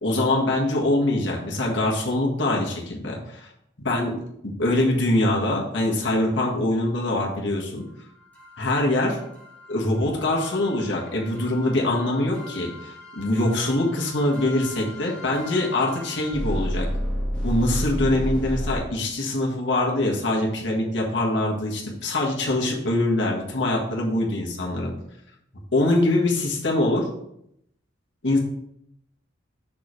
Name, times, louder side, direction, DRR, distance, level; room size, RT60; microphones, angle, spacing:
voice 1, 0.0-3.5 3.8-4.2 4.4-7.8 8.6-9.2 9.7-16.9 17.4-24.9 25.7-27.1 28.2-28.4, left 1 dB, 70° left, -2 dB, 1.6 m, -23 dB
sound 1, 8.4-18.8, equal, 10° left, 1.5 m, -32 dB
6.1 x 4.7 x 4.8 m, 0.76 s
head